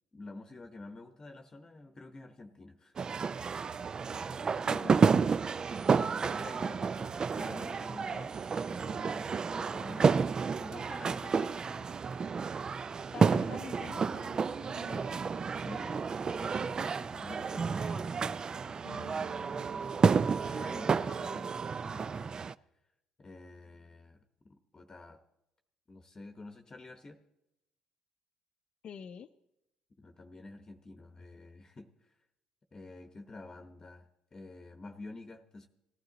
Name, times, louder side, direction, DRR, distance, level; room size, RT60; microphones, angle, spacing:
voice 1, 0.1-2.9 5.7-8.4 8.7-12.0 15.6-18.1 18.9-19.1 20.4-22.5 23.2-24.2 24.4-25.2 25.9-27.2 30.0-32.1 32.7-35.7, left 2 dB, 30° left, 7 dB, 1.0 m, -49 dB
sound 1, 3.0-22.5, right 5 dB, 40° right, 0.4 m, -31 dB
voice 2, 4.6-5.2 13.1-15.2 18.8-20.5 20.9-21.5 28.8-29.3, left 8 dB, 55° left, 7 dB, 0.5 m, -48 dB
18.0 x 11.5 x 4.0 m, 0.87 s
hypercardioid pair, 60°, 2 cm